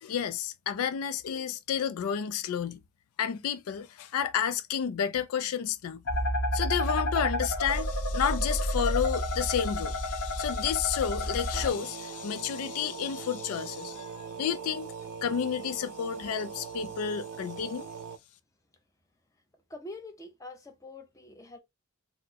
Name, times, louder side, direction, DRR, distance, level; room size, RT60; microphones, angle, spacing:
voice 1, 0.0-2.8 3.2-6.0 6.5-14.9 15.2-17.9, left 8 dB, 75° left, 0.3 m, -31 dB
sound 1, 6.1-11.7, left 1 dB, 55° left, 1.0 m, -30 dB
sound 2, 11.5-18.2, right 6 dB, 70° right, 0.3 m, -41 dB
voice 2, 19.7-21.6, left 2 dB, 15° left, 0.6 m, -45 dB
4.2 x 2.0 x 2.7 m
head